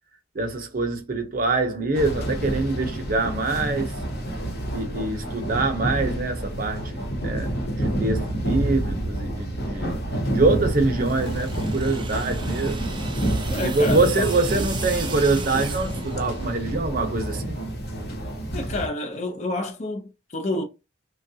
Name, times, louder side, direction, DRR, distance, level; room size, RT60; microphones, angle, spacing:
voice 1, 0.3-3.9 4.7-7.5 7.8-9.9 10.3-12.8 13.6-17.5, right 3 dB, 45° right, 0.7 m, -24 dB
sound 1, 1.9-18.9, right 1 dB, 55° left, 0.9 m, -28 dB
sound 2, 10.9-16.7, right 6 dB, 25° right, 0.4 m, -38 dB
voice 2, 13.5-14.7 18.5-20.6, left 2 dB, 35° left, 0.5 m, -29 dB
3.4 x 2.3 x 2.7 m
head